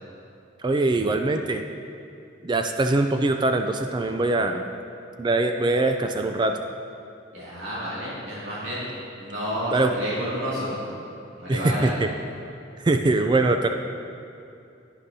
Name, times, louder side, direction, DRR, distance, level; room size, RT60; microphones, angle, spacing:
voice 1, 0.6-1.6 2.4-4.7 5.2-6.6 9.7-9.9 11.5-12.1 12.8-13.7, right 2 dB, 25° right, 6 dB, 0.3 m, -22 dB
voice 2, 7.3-10.8 11.4-11.9, equal, 65° right, -9 dB, 2.3 m, -30 dB
11.0 x 10.0 x 2.7 m, 2.6 s
head